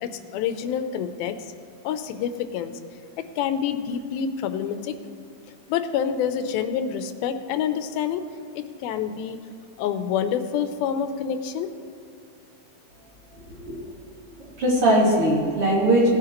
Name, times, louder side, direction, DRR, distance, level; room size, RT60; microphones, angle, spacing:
voice 1, 0.0-1.4 1.8-2.8 3.2-5.0 5.7-8.2 8.6-9.4 9.8-11.7, left 8 dB, 90° left, 10 dB, 2.5 m, -27 dB
voice 2, 13.3-13.8 14.6-16.2, right 1 dB, 40° right, -5 dB, 3.1 m, -20 dB
17.5 x 9.8 x 3.0 m, 2.6 s
omnidirectional pair, 4.2 m